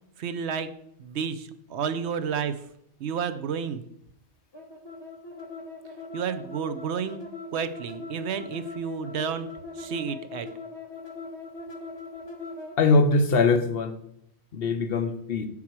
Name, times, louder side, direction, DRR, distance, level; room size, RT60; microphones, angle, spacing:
voice 1, 0.2-0.7 1.0-2.7 3.0-3.8 6.1-7.2 7.5-9.5 9.8-10.5, right 7 dB, 75° right, 0.9 m, -31 dB
sound 1, 4.5-12.8, left 3 dB, 25° left, 1.2 m, -40 dB
voice 2, 12.8-14.0 14.5-15.5, left 3 dB, 65° left, 0.9 m, -22 dB
7.2 x 6.2 x 4.6 m
omnidirectional pair, 1.1 m